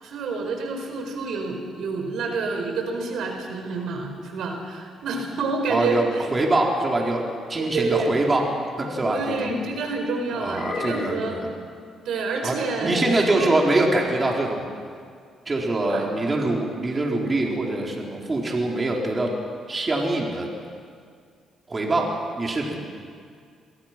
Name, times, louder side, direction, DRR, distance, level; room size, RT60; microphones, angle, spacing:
voice 1, 0.0-6.3 7.6-8.1 9.1-11.3 12.0-12.9 13.2-13.5 15.9-16.1, right 4 dB, 75° right, 3 dB, 4.7 m, -28 dB
voice 2, 5.7-7.2 7.5-8.4 8.8-9.5 10.3-11.5 12.4-14.7 15.5-19.3 19.7-20.5 21.7-22.8, right 2 dB, 30° right, -1 dB, 4.2 m, -24 dB
sound 1, 9.0-9.8 10.5-11.4 12.9-13.4, left 4 dB, 55° left, 2.8 m, -32 dB
29.0 x 23.0 x 6.1 m, 2.2 s
cardioid pair, 90°, 0 cm